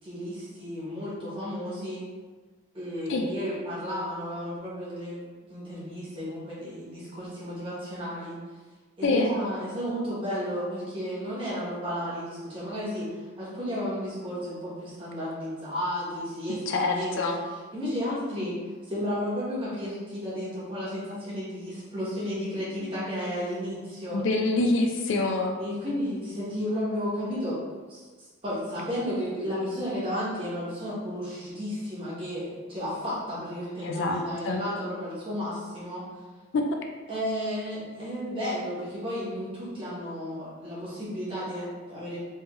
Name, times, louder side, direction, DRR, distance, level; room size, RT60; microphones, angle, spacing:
voice 1, 0.0-2.0 2.7-8.4 9.0-17.4 17.7-18.6 18.8-24.3 25.6-27.6 27.9-36.0 37.1-42.2, equal, 25° right, -8 dB, 1.2 m, -33 dB
voice 2, 16.7-17.4 24.1-25.6 33.8-34.6, left 2 dB, 55° left, 3 dB, 0.3 m, -26 dB
3.3 x 3.1 x 3.1 m, 1.3 s
head